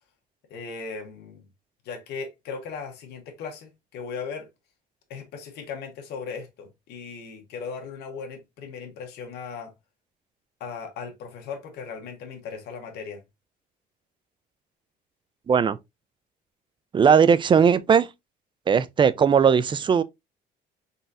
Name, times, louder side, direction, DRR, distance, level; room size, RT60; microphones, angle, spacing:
voice 1, 0.5-1.4 1.8-4.5 5.1-9.7 10.6-13.2, left 5 dB, 80° left, 1.3 m, -37 dB
voice 2, 15.5-15.8 16.9-18.1 18.7-20.0, right 7 dB, 30° right, 0.4 m, -18 dB
4.0 x 3.7 x 2.6 m
cardioid pair, 110°, 17 cm